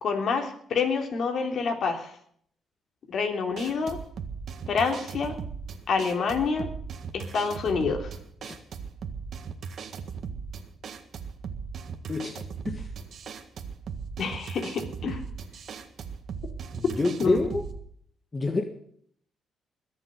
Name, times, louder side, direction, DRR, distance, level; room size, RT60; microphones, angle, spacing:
voice 1, 0.0-2.1 3.1-4.0 4.7-5.3 5.9-6.7 7.1-8.1 14.2-15.2 17.2-17.4, left 5 dB, 60° left, 4 dB, 3.3 m, -27 dB
sound 1, 3.5-17.8, right 6 dB, 60° right, 1.7 m, -38 dB
voice 2, 12.1-12.9 16.7-17.6 18.3-18.6, left 3 dB, 25° left, 5 dB, 1.7 m, -28 dB
21.0 x 7.2 x 8.3 m, 0.62 s
cardioid pair, 90°, 0 cm